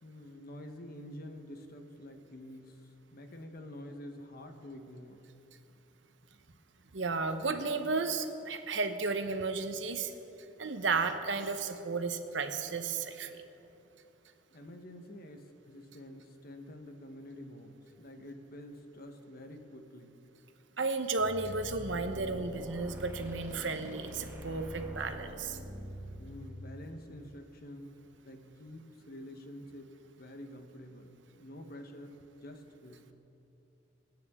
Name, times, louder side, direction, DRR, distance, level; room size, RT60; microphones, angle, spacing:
voice 1, 0.0-2.8 3.1-5.2 14.5-20.1 26.2-27.9 28.2-29.9 30.2-32.1 32.4-33.1, left 1 dB, 55° left, 6 dB, 1.1 m, -48 dB
voice 2, 6.9-10.1 10.6-13.4 20.8-25.6, right 4 dB, 80° right, 8 dB, 0.9 m, -33 dB
sound 1, 21.2-26.3, equal, 15° right, 1.8 m, -44 dB
24.0 x 9.4 x 3.7 m, 3.0 s
head